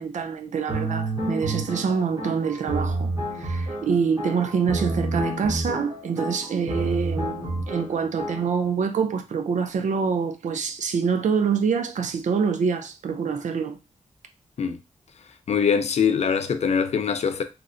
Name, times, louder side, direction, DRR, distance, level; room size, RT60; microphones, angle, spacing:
voice 1, 0.0-13.8, right 6 dB, 80° right, 0.5 m, -26 dB
sound 1, 0.7-8.6, right 1 dB, 35° right, 1.0 m, -29 dB
voice 2, 15.5-17.4, left 6 dB, 60° left, 0.4 m, -23 dB
2.9 x 2.0 x 3.7 m
wide cardioid pair, 110°, 12 cm